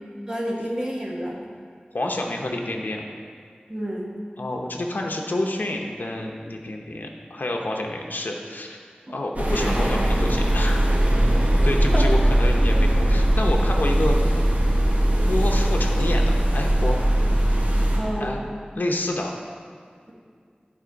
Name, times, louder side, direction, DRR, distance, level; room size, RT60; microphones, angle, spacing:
voice 1, 0.3-1.3 3.7-4.1 11.9-12.1 18.0-18.4, equal, 25° right, -3 dB, 1.6 m, -28 dB
voice 2, 1.9-3.0 4.4-8.8 9.1-10.9 11.6-14.3 15.3-17.0 18.2-18.4 18.8-19.3, left 1 dB, 75° left, 1 dB, 0.8 m, -28 dB
sound 1, 9.3-18.0, right 1 dB, 55° right, 1.4 m, -20 dB
11.0 x 4.3 x 5.2 m, 2.1 s
wide cardioid pair, 60°, 3 cm